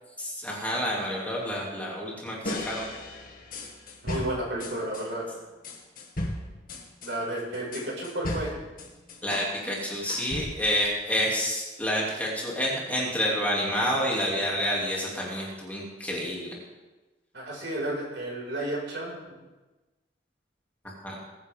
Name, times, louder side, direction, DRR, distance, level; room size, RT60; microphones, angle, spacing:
voice 1, 0.2-2.9 9.2-16.5 20.8-21.2, equal, 10° left, -4 dB, 2.8 m, -29 dB
sound 1, 2.4-5.1 5.6-9.5 9.8-10.8, left 1 dB, 50° left, 2.2 m, -36 dB
voice 2, 4.0-5.3 7.0-8.5 17.3-19.4, right 1 dB, 75° right, -4 dB, 5.7 m, -32 dB
21.0 x 10.0 x 3.7 m, 1.2 s
head